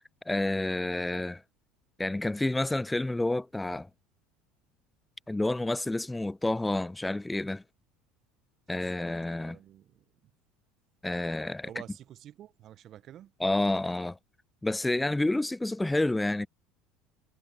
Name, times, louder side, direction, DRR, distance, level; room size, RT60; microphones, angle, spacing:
voice 1, 0.0-1.4 2.0-3.9 5.3-7.6 8.7-9.6 11.0-11.7 13.4-14.2 14.6-16.5, left 2 dB, 10° left, 0.3 m, -29 dB
voice 2, 9.4-10.0 11.6-13.3, right 11 dB, 50° right, 0.8 m, -49 dB
hypercardioid pair, 80°, 0 cm